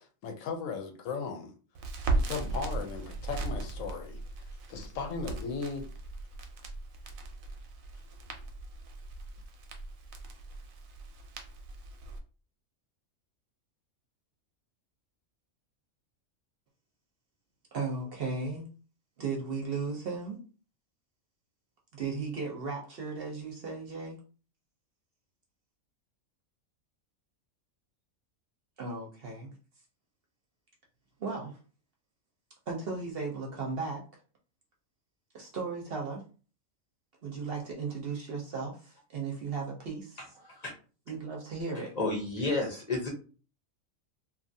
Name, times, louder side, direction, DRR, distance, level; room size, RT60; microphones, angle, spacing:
voice 1, 0.0-1.5 2.2-5.9, left 5 dB, 75° left, 4 dB, 1.0 m, -37 dB
Crackle, 1.8-12.2, right 3 dB, 90° right, 1.0 m, -37 dB
voice 2, 17.7-18.6 19.2-20.4 21.9-24.2 28.8-29.5 31.2-31.6 32.7-34.0 35.3-36.2 37.2-40.2 41.1-41.9, right 4 dB, 55° right, 0 dB, 0.7 m, -36 dB
voice 3, 41.9-43.1, left 2 dB, 40° left, 0 dB, 0.6 m, -31 dB
2.8 x 2.3 x 2.6 m, 0.37 s
omnidirectional pair, 1.4 m